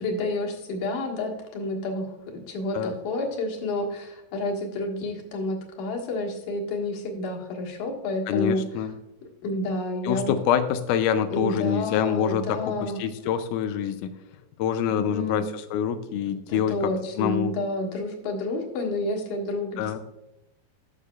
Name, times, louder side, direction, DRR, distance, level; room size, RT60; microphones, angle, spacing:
voice 1, 0.0-8.9 9.4-10.3 11.3-13.0 14.9-15.4 16.5-20.0, left 2 dB, 60° left, 1 dB, 2.8 m, -30 dB
voice 2, 8.3-8.9 10.0-14.1 14.6-16.8 17.2-17.5 19.8-20.0, left 8 dB, 85° left, 8 dB, 1.8 m, -26 dB
13.0 x 6.7 x 2.3 m, 0.91 s
omnidirectional pair, 4.1 m